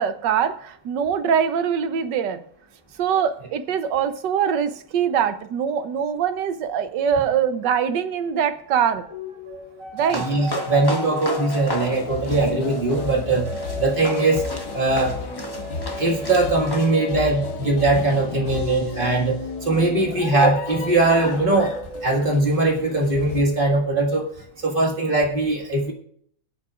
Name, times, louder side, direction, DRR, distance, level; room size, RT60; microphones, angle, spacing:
voice 1, 0.0-2.4 3.0-9.1 9.9-10.2, right 8 dB, 75° right, 11 dB, 1.4 m, -23 dB
sound 1, 9.0-18.2 18.5-22.1, right 1 dB, 50° right, 2.5 m, -35 dB
sound 2, 10.0-16.9, left 2 dB, 15° left, 1.0 m, -35 dB
voice 2, 10.1-13.5 13.8-14.5 14.7-15.2 16.0-24.3 24.6-25.9, right 2 dB, 30° right, 0 dB, 1.9 m, -21 dB
sound 3, 11.9-23.4, left 5 dB, 65° left, 1.8 m, -34 dB
23.5 x 8.5 x 2.4 m, 0.63 s
omnidirectional pair, 1.9 m